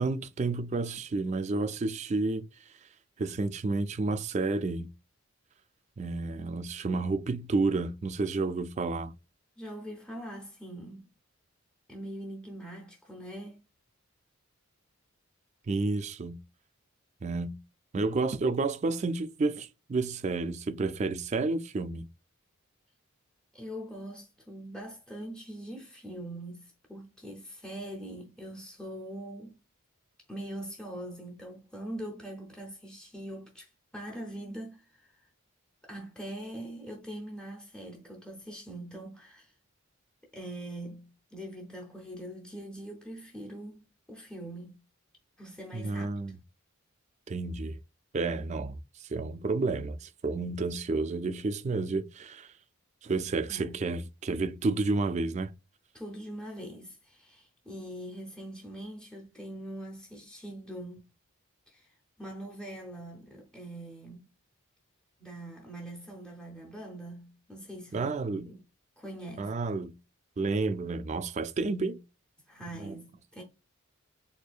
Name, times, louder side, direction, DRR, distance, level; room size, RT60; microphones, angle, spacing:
voice 1, 0.0-2.5 3.2-4.9 6.0-9.1 15.7-16.4 17.2-17.6 17.9-22.1 45.7-46.4 47.3-47.8 48.1-52.5 53.0-55.5 67.9-68.5 69.4-70.0 70.4-72.0 72.8-72.9, right 3 dB, 30° right, 0.3 m, -30 dB
voice 2, 9.6-11.1 11.9-13.6 23.5-29.6 30.3-35.3 35.8-39.5 40.3-44.8 45.4-46.1 53.5-53.8 55.9-61.1 61.7-64.3 65.2-68.6 69.0-69.6 72.5-73.4, right 1 dB, 5° left, 0.6 m, -42 dB
4.3 x 2.6 x 2.3 m
head